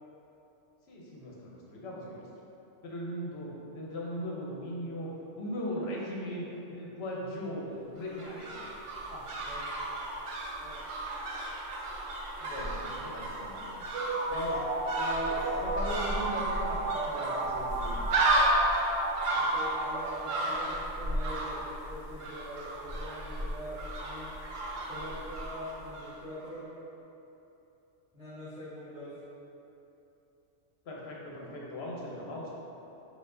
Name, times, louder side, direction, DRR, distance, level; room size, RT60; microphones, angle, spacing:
voice 1, 0.9-2.3 2.8-5.1 5.4-7.7 7.9-8.6 9.1-9.5 12.4-13.9 14.3-14.6 15.0-18.0 30.8-32.5, equal, 65° left, -4 dB, 1.0 m, -39 dB
sound 1, 8.0-26.1 26.4-26.5, right 1 dB, 55° right, 0.6 m, -34 dB
sound 2, 13.9-20.7, right 2 dB, 80° right, 1.0 m, -33 dB
voice 2, 19.3-24.3 24.9-26.7 28.1-29.2, equal, 35° right, -14 dB, 1.3 m, -44 dB
4.4 x 2.5 x 3.7 m, 3.0 s
omnidirectional pair, 1.2 m